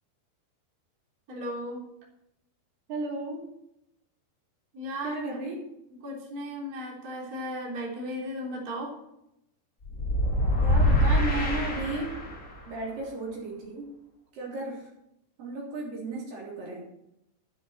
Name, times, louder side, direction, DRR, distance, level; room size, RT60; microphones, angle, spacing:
voice 1, 1.3-1.8 4.7-5.2 6.0-8.9, equal, 20° right, -3 dB, 3.4 m, -35 dB
voice 2, 2.9-3.4 5.0-5.6 10.6-12.2 12.6-13.9 14.3-14.9 15.4-16.9, right 2 dB, 55° right, -3 dB, 4.9 m, -34 dB
sound 1, 9.8-12.5, left 1 dB, 30° left, 1.8 m, -24 dB
12.5 x 12.5 x 4.4 m, 0.83 s
omnidirectional pair, 5.1 m